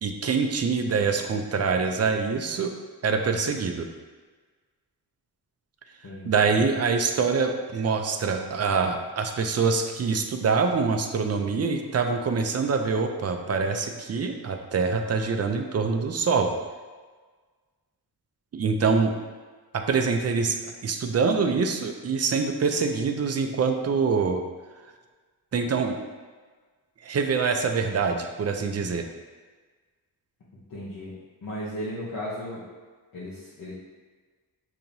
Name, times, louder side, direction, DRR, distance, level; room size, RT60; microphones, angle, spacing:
voice 1, 0.0-2.7 3.0-3.9 6.2-16.5 18.5-19.2 19.7-20.6 20.8-24.4 25.5-26.0 27.0-29.1, right 5 dB, 40° right, 5 dB, 0.4 m, -25 dB
voice 2, 6.0-6.6 30.7-31.1 31.4-32.6 33.1-33.7, equal, 60° left, -8 dB, 0.9 m, -35 dB
6.8 x 2.9 x 2.6 m, 1.4 s
wide cardioid pair, 120°, 40 cm